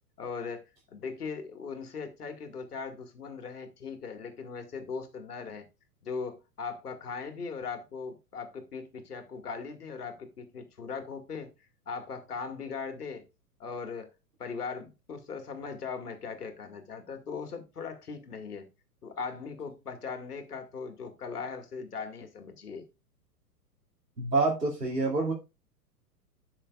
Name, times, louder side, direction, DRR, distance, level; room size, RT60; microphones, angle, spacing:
voice 1, 0.2-0.6 0.9-5.6 6.0-11.5 11.9-13.3 13.6-14.1 14.4-18.7 19.0-22.9, left 5 dB, 70° left, 2.1 m, -39 dB
voice 2, 24.2-25.3, right 3 dB, 80° right, 2.7 m, -27 dB
12.5 x 6.3 x 2.4 m
figure-of-eight pair, 110°, 47 cm